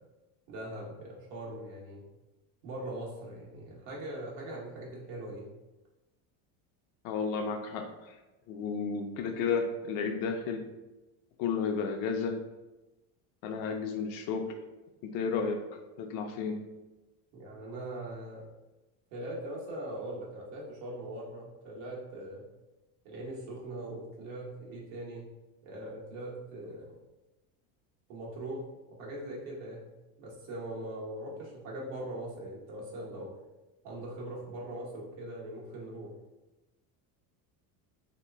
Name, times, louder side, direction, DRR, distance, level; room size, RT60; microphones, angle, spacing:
voice 1, 0.5-2.0 2.6-5.5 17.3-18.5 19.1-22.4 23.0-25.2 25.6-26.9 28.1-28.6 28.9-29.9 30.2-33.3 33.8-36.1, right 1 dB, 85° right, -4 dB, 1.2 m, -41 dB
voice 2, 7.0-8.2 8.5-10.6 11.4-12.4 13.4-14.5 15.0-15.6 16.0-16.6, left 5 dB, 60° left, 5 dB, 0.5 m, -32 dB
2.9 x 2.3 x 3.3 m, 1.1 s
cardioid pair, 135°, 41 cm